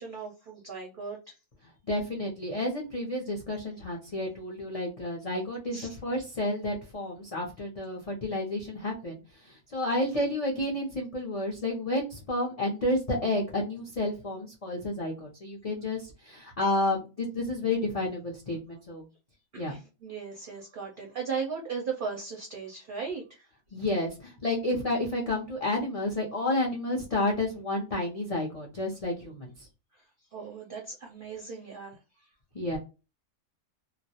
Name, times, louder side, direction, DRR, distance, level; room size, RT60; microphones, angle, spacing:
voice 1, 0.0-1.4 5.7-5.9 19.5-23.5 30.3-32.0, right 5 dB, 55° right, 0 dB, 0.6 m, -37 dB
voice 2, 1.9-19.1 19.6-19.8 23.7-29.7 32.5-32.8, left 1 dB, 55° left, -2 dB, 0.4 m, -31 dB
2.3 x 2.0 x 2.7 m, 0.30 s
omnidirectional pair, 1.5 m